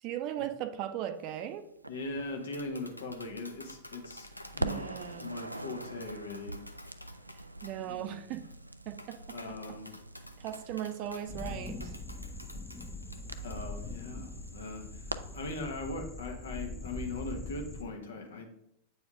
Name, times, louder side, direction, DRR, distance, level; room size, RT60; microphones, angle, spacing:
voice 1, 0.0-1.6 4.6-5.3 7.6-8.4 8.9-9.2 10.4-11.9, right 11 dB, 40° right, 8 dB, 0.6 m, -37 dB
Crackle, 1.8-4.0 4.3-15.7, right 1 dB, 85° right, 0.3 m, -44 dB
voice 2, 1.9-4.3 4.5-4.8 5.2-6.6 7.8-8.2 9.3-10.0 13.4-18.5, left 2 dB, 65° left, 3 dB, 1.3 m, -40 dB
Tap, 2.3-13.5, equal, 90° left, 0.5 m, -51 dB
sound 1, 11.3-17.8, left 2 dB, 15° left, 0.7 m, -42 dB
8.4 x 4.3 x 3.6 m, 0.78 s
figure-of-eight pair, 90°, 0 cm